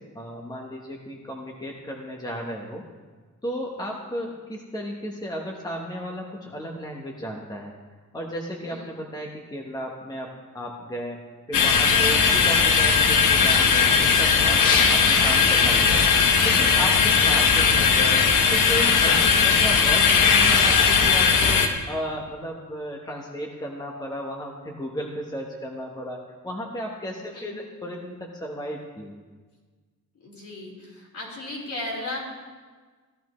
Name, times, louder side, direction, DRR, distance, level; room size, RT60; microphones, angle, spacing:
voice 1, 0.0-2.9 3.4-7.7 8.1-16.0 16.4-18.2 18.5-29.2, equal, 15° left, 0 dB, 1.1 m, -34 dB
sound 1, 11.5-21.7, left 5 dB, 85° left, 1.2 m, -18 dB
voice 2, 30.2-32.2, left 2 dB, 65° left, -5 dB, 4.1 m, -36 dB
15.5 x 12.0 x 3.2 m, 1.4 s
cardioid pair, 130°, 31 cm